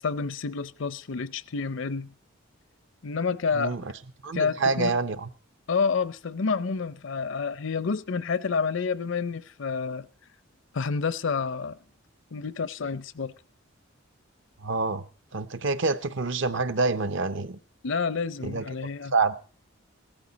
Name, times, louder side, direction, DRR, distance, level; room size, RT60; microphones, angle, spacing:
voice 1, 0.0-2.1 3.0-3.9 4.3-4.9 5.7-10.1 10.7-11.8 12.3-13.3 17.8-19.1, left 5 dB, 60° left, 0.6 m, -29 dB
voice 2, 4.2-5.3 14.6-15.0 15.3-17.6 18.4-18.6 19.1-19.3, right 3 dB, 60° right, 0.8 m, -26 dB
16.5 x 13.0 x 4.1 m
head